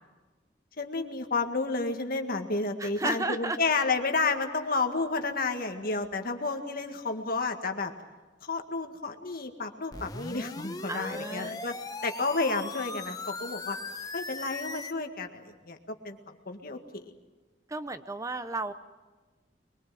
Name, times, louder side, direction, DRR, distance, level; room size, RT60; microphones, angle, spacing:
voice 1, 0.8-7.9 8.4-11.8 12.0-13.8 14.1-17.1, left 3 dB, 55° left, 5 dB, 1.9 m, -31 dB
voice 2, 2.8-3.6 10.9-11.5 17.7-18.7, right 2 dB, 20° right, 11 dB, 0.7 m, -33 dB
sound 1, 9.9-14.9, left 3 dB, 20° left, 1.1 m, -39 dB
23.5 x 22.0 x 7.7 m, 1.2 s
head